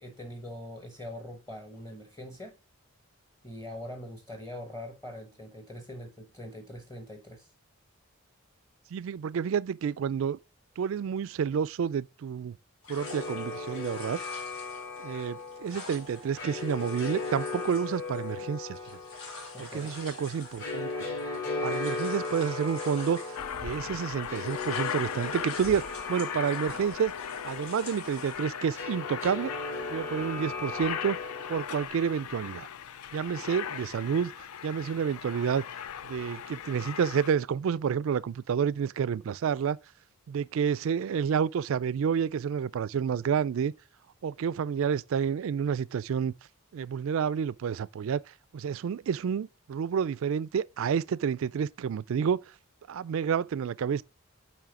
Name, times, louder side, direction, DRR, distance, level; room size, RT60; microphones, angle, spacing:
voice 1, 0.0-2.6 3.4-7.5 19.5-20.0, left 1 dB, 15° left, 0.9 m, -43 dB
voice 2, 8.9-10.4 10.8-12.5 12.9-14.2 15.0-18.8 19.6-20.9 21.6-23.2 23.6-27.1 27.4-29.5 29.9-31.2 31.5-32.7 33.1-35.6 36.0-39.8 40.3-43.7 44.2-46.3 46.7-48.2 48.5-52.4 52.9-54.0, right 7 dB, 65° right, 0.3 m, -29 dB
sound 1, 12.8-23.9 24.2-28.5, left 3 dB, 75° left, 2.9 m, -47 dB
sound 2, 13.0-31.9, left 3 dB, 55° left, 3.1 m, -38 dB
Aircraft, 23.4-37.3, left 9 dB, 90° left, 0.4 m, -38 dB
9.0 x 3.1 x 4.8 m
head